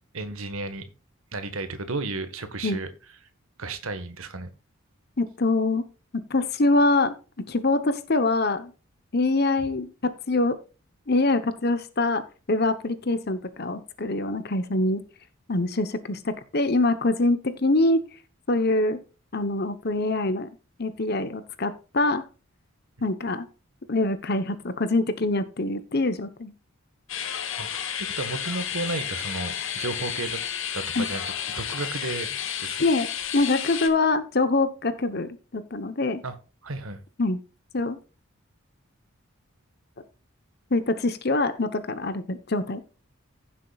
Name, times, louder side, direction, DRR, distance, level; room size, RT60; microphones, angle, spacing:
voice 1, 0.1-0.9 1.3-2.9 3.6-4.5 27.6-30.4 30.7-31.2 31.6-32.8 36.2-36.4 36.6-37.0, right 3 dB, 75° right, 1.5 m, -33 dB
voice 2, 5.2-5.8 6.3-8.7 9.1-10.6 11.1-15.0 15.5-18.0 18.5-19.0 19.3-20.5 20.8-22.2 23.0-23.5 23.9-26.5 30.9-31.1 32.8-33.1 33.3-36.2 37.2-37.4 37.7-38.0 40.7-42.8, left 2 dB, 50° left, 1.0 m, -24 dB
sound 1, 27.1-33.9, left 9 dB, 65° left, 1.7 m, -32 dB
16.0 x 7.4 x 2.4 m
head